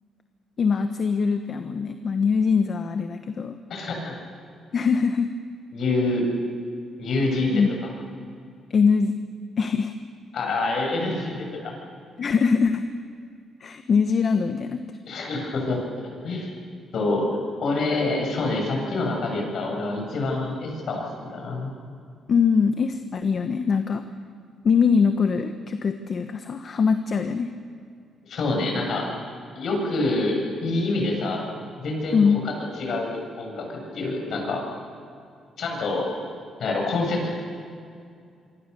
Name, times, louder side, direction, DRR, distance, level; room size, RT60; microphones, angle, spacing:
voice 1, 0.6-3.6 4.7-5.3 7.5-7.7 8.7-9.2 9.6-9.9 12.2-12.8 13.6-14.8 22.3-24.0 24.6-27.5 32.1-32.4, left 5 dB, 45° left, 8 dB, 1.2 m, -22 dB
voice 2, 3.7-4.2 5.7-6.2 7.0-7.6 10.3-11.7 15.1-15.8 16.2-16.5 16.9-21.7 28.2-29.1 29.6-31.4 31.8-32.2 32.8-34.6 35.6-36.1 36.6-37.3, left 2 dB, 60° left, 1 dB, 7.4 m, -26 dB
27.0 x 24.0 x 6.9 m, 2.3 s
cardioid pair, 125°, 0 cm